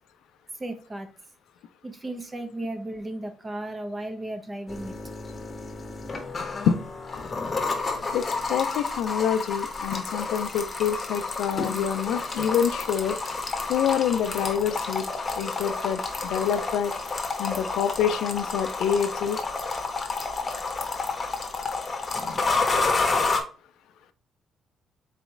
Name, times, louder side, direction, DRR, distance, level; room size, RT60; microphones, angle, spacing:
voice 1, 0.6-1.1 1.8-5.0, right 1 dB, 25° right, 7 dB, 0.8 m, -35 dB
sound 1, 4.7-23.4, left 3 dB, 35° left, 1.0 m, -30 dB
voice 2, 8.1-13.2 13.7-15.1 15.4-16.9 17.4-19.4, left 8 dB, 85° left, 11 dB, 0.4 m, -26 dB
4.1 x 3.0 x 3.6 m, 0.40 s
cardioid pair, 90°, 0 cm